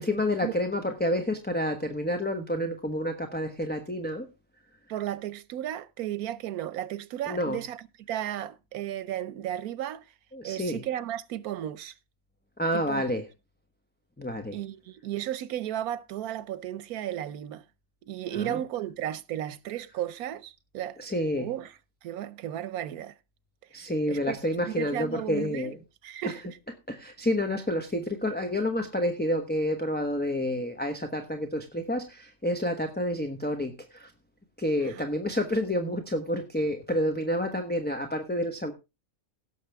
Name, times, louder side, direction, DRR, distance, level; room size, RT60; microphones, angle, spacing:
voice 1, 0.0-4.3 7.3-7.6 10.3-10.8 12.6-13.3 14.2-14.6 18.3-18.6 21.0-21.5 23.7-25.8 26.2-26.3 26.9-34.1 34.6-38.7, left 1 dB, 10° left, 1.0 m, -29 dB
voice 2, 4.9-10.0 10.4-11.9 12.7-13.1 14.5-17.6 18.1-21.0 21.4-21.7 22.0-23.1 24.1-24.4 24.7-25.7 26.0-26.4 34.9-35.0, right 12 dB, 90° right, 1.2 m, -34 dB
17.0 x 7.0 x 3.4 m
omnidirectional pair, 1.5 m